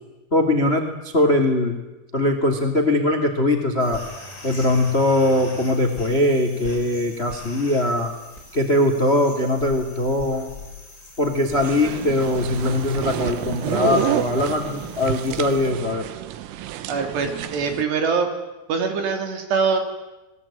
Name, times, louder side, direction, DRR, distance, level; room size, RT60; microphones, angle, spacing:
voice 1, 0.3-1.8 2.1-4.0 4.4-8.1 8.5-10.5 11.2-16.0, left 1 dB, 45° left, 7 dB, 0.8 m, -21 dB
sound 1, 3.8-15.7, left 2 dB, 15° left, 6.6 m, -42 dB
sound 2, 11.5-17.8, right 12 dB, 80° right, 3.8 m, -29 dB
voice 2, 16.9-18.3 18.7-19.8, right 5 dB, 60° right, 6 dB, 4.7 m, -23 dB
28.5 x 21.5 x 8.8 m, 1.1 s
omnidirectional pair, 6.0 m